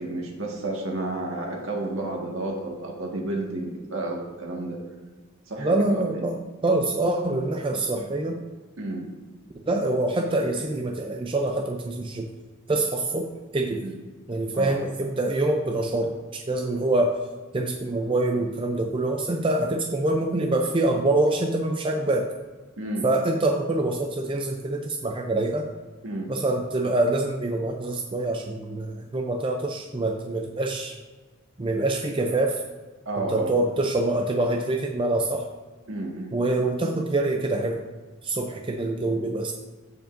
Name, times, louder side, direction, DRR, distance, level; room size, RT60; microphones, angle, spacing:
voice 1, 0.0-4.8 5.5-6.3 8.8-9.1 13.8-13.9 14.5-14.7 22.8-23.1 26.0-26.3 33.0-33.5 35.9-36.3, right 2 dB, 65° right, 0 dB, 1.7 m, -31 dB
voice 2, 5.6-8.4 9.7-12.3 12.7-13.8 14.3-17.1 17.5-22.3 23.0-25.7 26.3-31.0 31.6-32.6 33.2-35.5 36.3-37.8 38.2-39.5, right 2 dB, 25° right, 3 dB, 0.5 m, -25 dB
15.5 x 5.3 x 2.6 m, 1.4 s
head